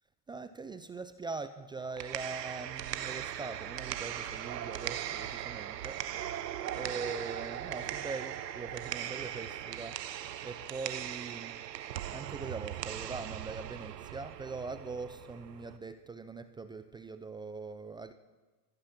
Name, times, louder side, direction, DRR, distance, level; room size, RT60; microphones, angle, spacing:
voice 1, 0.3-6.0 6.8-10.0 10.4-11.6 12.1-18.1, right 4 dB, 10° right, 10 dB, 0.4 m, -42 dB
sound 1, 1.8-15.8, right 11 dB, 85° right, 1.0 m, -39 dB
14.5 x 14.5 x 5.8 m, 1.2 s
hypercardioid pair, 105°, 47 cm